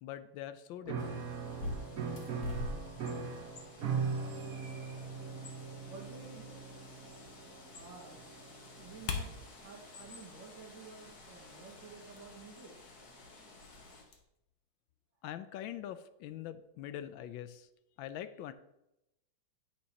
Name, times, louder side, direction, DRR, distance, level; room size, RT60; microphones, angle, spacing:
voice 1, 0.0-1.3 15.2-17.7 18.0-18.5, left 11 dB, 85° left, 12 dB, 1.4 m, -43 dB
Piano, 0.8-9.3, right 5 dB, 55° right, 1.3 m, -40 dB
Bird, 1.0-14.0, left 1 dB, 50° left, 1.9 m, -48 dB
voice 2, 5.9-6.6 7.8-8.2 8.8-9.3 9.6-12.8, right 5 dB, 70° right, -1 dB, 2.5 m, -51 dB
sound 1, 8.7-14.2, left 5 dB, 70° left, 1.6 m, -46 dB
9.4 x 8.8 x 2.9 m, 0.87 s
omnidirectional pair, 2.1 m